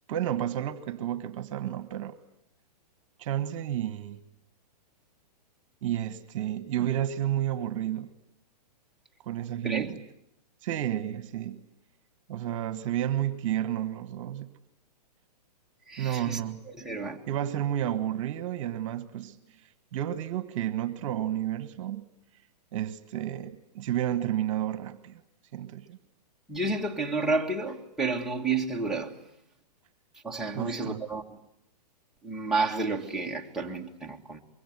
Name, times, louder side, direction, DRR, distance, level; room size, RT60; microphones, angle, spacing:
voice 1, 0.1-2.1 3.2-4.2 5.8-8.1 9.2-10.0 10.6-11.6 12.3-14.5 16.0-16.6 17.3-19.4 19.9-22.1 22.7-25.2 25.5-26.0 30.5-31.0, right 11 dB, 50° right, 1.6 m, -31 dB
voice 2, 15.9-16.4 16.8-17.2 26.5-29.1 30.2-31.2 32.2-34.4, right 3 dB, ahead, 2.0 m, -30 dB
25.0 x 23.0 x 9.6 m
hypercardioid pair, 135°, 21 cm